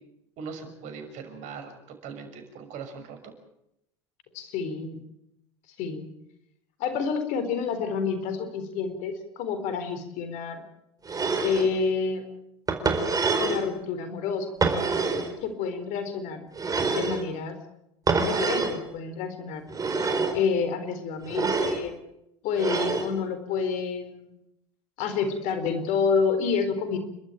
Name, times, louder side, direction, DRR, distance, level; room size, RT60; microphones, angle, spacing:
voice 1, 0.4-3.3, right 5 dB, 60° right, 7 dB, 6.3 m, -40 dB
voice 2, 4.3-5.0 5.8-6.1 6.8-10.6 11.4-12.3 13.4-14.5 15.4-16.5 16.8-17.6 18.1-19.6 20.3-22.0 22.4-24.4 25.0-27.0, left 5 dB, 60° left, 9 dB, 4.1 m, -28 dB
sound 1, 11.1-11.7 12.7-13.7 14.6-15.3 16.6-17.2 18.1-18.8 19.7-20.4 21.3-21.8 22.6-23.1, right 4 dB, 25° right, 4.5 m, -26 dB
29.0 x 13.5 x 9.2 m, 0.83 s
hypercardioid pair, 80°, 14 cm